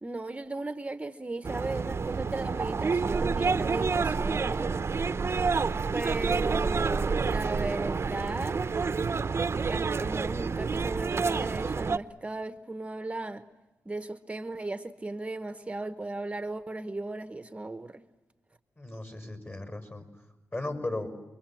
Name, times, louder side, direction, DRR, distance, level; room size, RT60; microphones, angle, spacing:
voice 1, 0.0-4.7 5.9-8.6 9.6-13.4 13.9-18.0, right 2 dB, 20° right, 1.0 m, -36 dB
sound 1, 1.4-12.0, right 5 dB, 45° right, 0.8 m, -28 dB
voice 2, 18.8-20.0 20.5-21.1, left 2 dB, 35° left, 6.5 m, -36 dB
29.0 x 23.5 x 7.7 m
cardioid pair, 70°, 6 cm